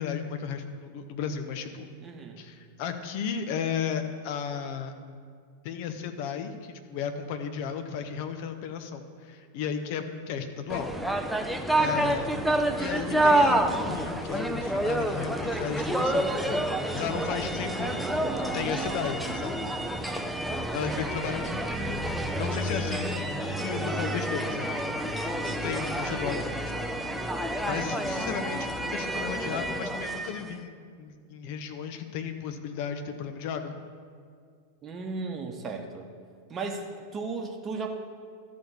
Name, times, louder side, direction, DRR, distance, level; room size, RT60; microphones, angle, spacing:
voice 1, 0.0-1.9 2.4-4.9 5.6-10.9 11.7-12.3 12.8-16.7 16.9-19.6 20.7-22.1 22.4-24.8 25.2-26.9 27.6-33.8, left 7 dB, 45° left, 7 dB, 0.8 m, -34 dB
voice 2, 2.0-2.4 11.9-12.3 17.7-19.1 20.9-21.3 22.7-23.1 25.3-26.1 34.8-36.1 36.5-37.9, right 4 dB, 25° right, 4 dB, 1.0 m, -37 dB
sound 1, 10.7-30.5, right 1 dB, ahead, 0.5 m, -29 dB
12.5 x 4.3 x 7.1 m, 2.1 s
figure-of-eight pair, 90°, 0 cm